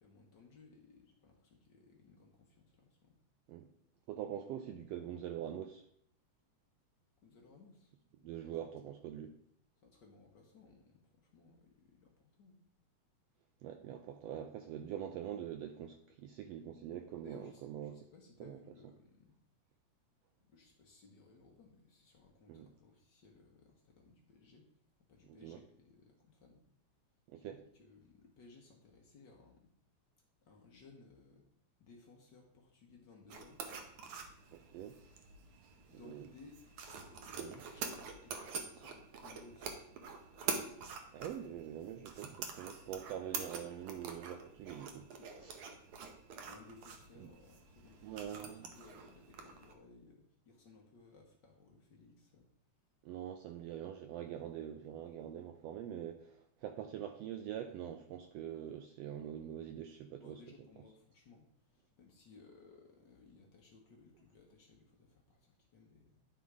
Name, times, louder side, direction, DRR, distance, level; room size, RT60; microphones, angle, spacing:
voice 1, 0.0-3.2 7.2-7.9 8.2-8.5 9.8-12.6 17.2-19.3 20.5-24.7 25.1-26.6 27.3-29.7 30.4-31.4 31.8-33.6 35.9-36.6 36.9-39.9 45.1-45.5 46.4-52.5 60.2-66.2, left 3 dB, 65° left, 0 dB, 1.1 m, -61 dB
voice 2, 4.1-5.9 8.2-9.3 13.6-17.9 18.4-18.6 22.5-22.7 25.3-25.6 27.3-27.6 34.5-35.0 36.0-36.3 37.4-37.6 41.1-45.1 45.4-45.6 47.2-47.3 48.0-48.7 53.0-60.4, right 10 dB, 85° right, 6 dB, 1.4 m, -44 dB
sound 1, 33.3-49.7, right 5 dB, 70° right, 1.4 m, -46 dB
11.0 x 3.8 x 4.7 m, 0.68 s
omnidirectional pair, 3.4 m